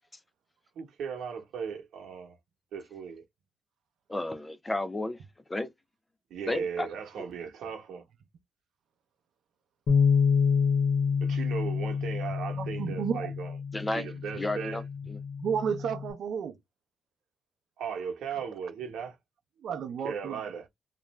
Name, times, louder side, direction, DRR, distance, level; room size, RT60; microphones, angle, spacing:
voice 1, 0.7-2.4 2.7-3.2 6.3-8.0 11.2-13.6 13.9-14.8 17.8-19.2 20.0-20.7, right 7 dB, 80° right, 0.9 m, -37 dB
voice 2, 4.1-5.2 5.5-5.7 6.5-6.9 13.7-14.1 14.4-15.2, left 2 dB, 10° left, 0.3 m, -32 dB
Bass guitar, 9.9-16.1, left 6 dB, 55° left, 0.6 m, -28 dB
voice 3, 12.5-13.3 15.4-16.6 19.6-20.4, right 7 dB, 60° right, 0.6 m, -32 dB
2.5 x 2.2 x 3.0 m
cardioid pair, 165°, 0 cm